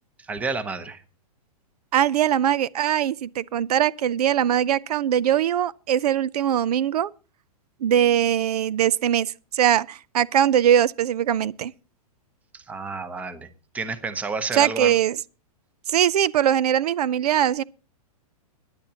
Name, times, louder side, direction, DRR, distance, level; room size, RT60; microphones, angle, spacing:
voice 1, 0.2-1.0 12.5-13.5 13.7-14.9, right 4 dB, 5° right, 0.8 m, -30 dB
voice 2, 1.9-7.1 7.8-11.7 14.5-15.2 15.9-17.6, right 10 dB, 75° right, 0.5 m, -21 dB
21.0 x 10.5 x 2.8 m
hypercardioid pair, 165°, 20 cm